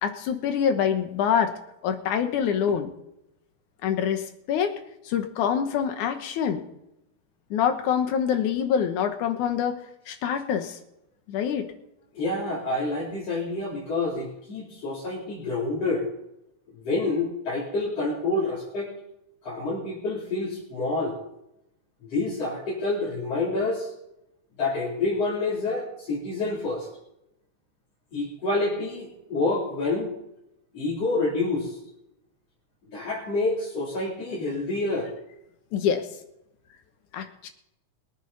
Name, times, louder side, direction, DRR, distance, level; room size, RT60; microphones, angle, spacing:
voice 1, 0.0-1.5 1.8-2.9 3.8-4.7 5.1-6.7 7.5-9.8 10.1-10.8 11.3-11.7 35.7-36.1 37.1-37.5, left 8 dB, 90° left, 7 dB, 2.7 m, -25 dB
voice 2, 12.1-16.0 16.7-18.9 19.4-21.2 22.1-23.9 24.6-26.9 28.1-30.1 30.7-31.8 32.9-35.1, left 2 dB, 55° left, -7 dB, 4.3 m, -28 dB
22.5 x 9.0 x 4.1 m, 0.85 s
omnidirectional pair, 3.4 m